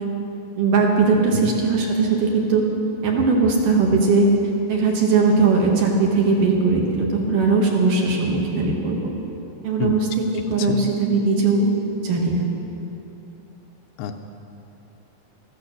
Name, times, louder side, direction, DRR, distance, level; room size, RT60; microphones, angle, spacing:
voice 1, 0.6-2.6 3.0-4.3 4.7-9.1 9.6-10.1 10.5-11.7 12.0-12.4, right 4 dB, 60° right, -1 dB, 2.7 m, -19 dB
voice 2, 10.6-10.9 14.0-14.2, left 8 dB, 80° left, 6 dB, 2.6 m, -27 dB
14.0 x 13.5 x 6.5 m, 2.9 s
omnidirectional pair, 4.8 m